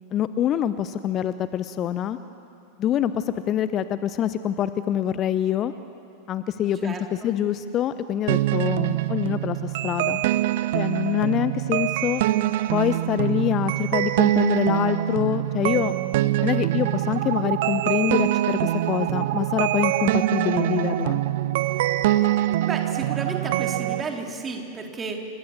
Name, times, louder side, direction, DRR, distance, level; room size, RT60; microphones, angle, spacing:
voice 1, 0.1-2.2 2.8-5.7 6.3-6.9 7.2-10.2 10.7-12.2 12.7-15.9 16.4-18.6 18.9-21.2, left 10 dB, 30° left, 13 dB, 0.7 m, -25 dB
voice 2, 6.8-7.3 21.7-21.8 22.6-25.3, right 4 dB, 20° right, 2 dB, 3.5 m, -33 dB
sound 1, 8.3-24.0, right 14 dB, 50° right, 0.8 m, -24 dB
29.5 x 26.0 x 7.4 m, 2.7 s
figure-of-eight pair, 90°, 0 cm